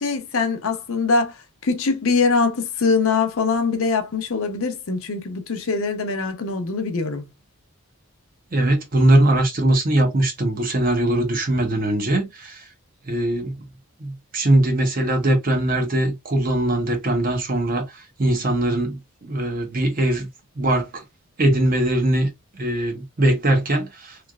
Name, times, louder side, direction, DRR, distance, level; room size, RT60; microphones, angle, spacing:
voice 1, 0.0-1.4 1.6-7.3, left 4 dB, 70° left, 0.7 m, -22 dB
voice 2, 8.5-12.6 13.1-13.6 14.0-20.3 20.6-21.0 21.4-24.3, right 1 dB, 40° right, 0.7 m, -21 dB
3.2 x 2.4 x 2.3 m
head